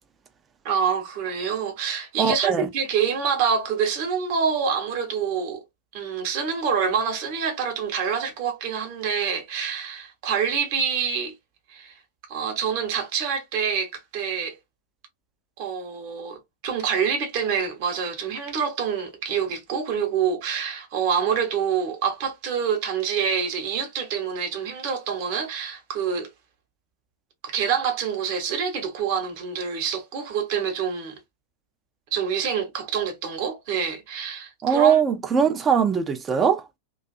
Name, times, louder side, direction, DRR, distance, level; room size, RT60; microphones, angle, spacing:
voice 1, 0.6-5.6 5.9-11.3 11.7-12.0 12.3-14.6 15.6-26.3 27.4-31.1 32.1-35.0, right 6 dB, 45° right, 1.0 m, -26 dB
voice 2, 2.2-2.7 34.6-36.6, right 7 dB, 20° right, 0.5 m, -21 dB
2.6 x 2.3 x 2.4 m
figure-of-eight pair, 90°, 0 cm